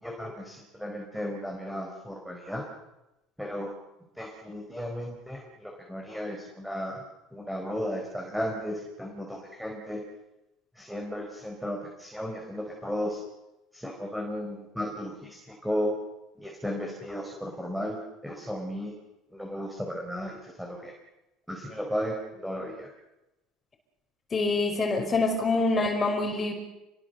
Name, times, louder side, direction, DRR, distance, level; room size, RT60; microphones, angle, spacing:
voice 1, 0.0-2.6 3.4-3.7 4.2-7.0 7.3-10.0 10.8-13.2 13.7-15.9 16.4-18.9 19.3-20.9 21.5-22.9, equal, ahead, 1 dB, 4.6 m, -34 dB
voice 2, 24.3-26.5, left 3 dB, 25° left, 4 dB, 5.1 m, -25 dB
29.5 x 22.0 x 6.8 m, 0.96 s
cardioid pair, 130°, 0 cm